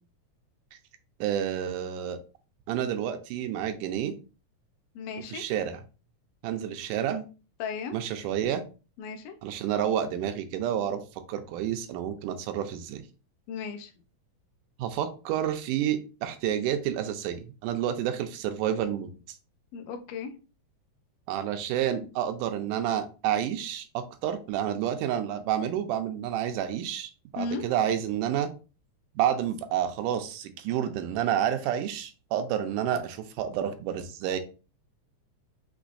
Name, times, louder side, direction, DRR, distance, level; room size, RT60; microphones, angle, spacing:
voice 1, 1.2-2.2 2.7-4.1 5.3-5.8 6.4-7.3 7.9-8.6 9.4-11.0 11.3-13.0 14.8-19.1 21.3-28.5 29.2-34.4, right 10 dB, 85° right, 8 dB, 2.1 m, -29 dB
voice 2, 4.9-5.4 7.6-8.0 9.0-9.4 13.5-13.9 19.7-20.3 27.4-27.6, left 5 dB, 90° left, 6 dB, 1.4 m, -35 dB
6.0 x 3.0 x 2.6 m, 0.34 s
omnidirectional pair, 3.6 m